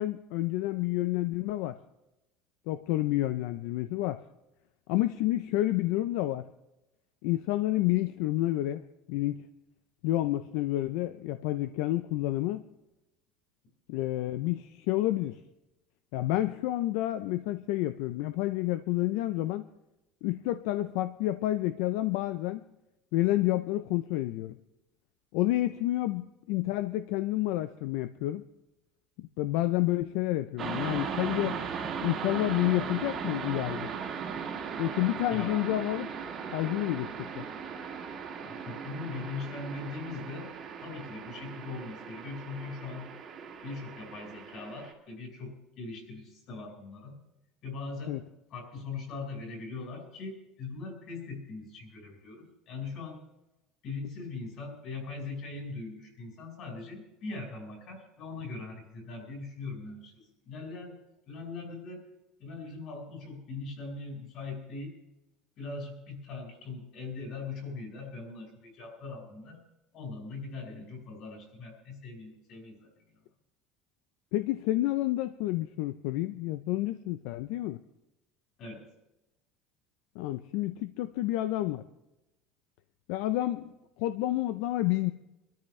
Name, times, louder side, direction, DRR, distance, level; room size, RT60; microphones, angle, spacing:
voice 1, 0.0-1.8 2.7-4.2 4.9-6.4 7.2-8.8 9.1-9.4 10.0-12.6 13.9-15.4 16.1-19.7 20.2-22.6 23.1-24.6 25.3-28.4 29.2-31.6 32.0-33.9 34.8-36.1 36.5-37.5 48.1-48.2 74.3-77.8 80.2-81.8 83.1-83.7 84.0-85.1, left 15 dB, 70° left, 12 dB, 0.5 m, -29 dB
sound 1, 30.6-44.9, right 6 dB, 30° right, 2.0 m, -38 dB
voice 2, 35.3-35.6 38.4-40.5 40.8-43.1 43.6-47.2 47.6-48.2 48.5-53.2 53.8-61.0 61.3-62.1 62.4-64.9 65.6-69.6 69.9-73.2 78.6-78.8, left 3 dB, 45° left, 2 dB, 4.7 m, -41 dB
24.0 x 13.5 x 3.2 m, 0.94 s
cardioid pair, 165°, 0 cm